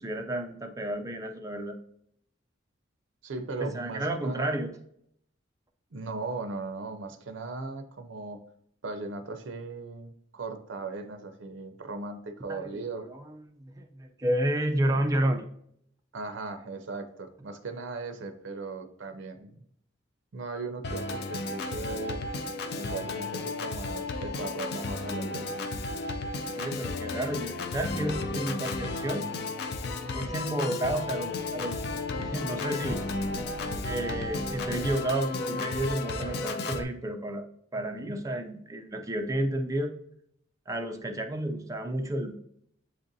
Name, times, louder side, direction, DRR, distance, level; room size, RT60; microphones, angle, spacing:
voice 1, 0.0-1.8 3.6-4.7 12.5-15.5 26.5-29.3 30.1-33.0 33.8-39.9 40.7-42.4, right 1 dB, 15° right, 4 dB, 0.4 m, -31 dB
voice 2, 3.2-4.6 5.9-8.4 8.8-13.1 16.1-19.6 20.3-22.2 22.8-25.5 37.9-38.1, right 3 dB, 70° right, 7 dB, 0.5 m, -38 dB
Organ, 20.8-36.8, left 3 dB, 55° left, 0.3 m, -33 dB
7.1 x 2.5 x 2.6 m, 0.69 s
head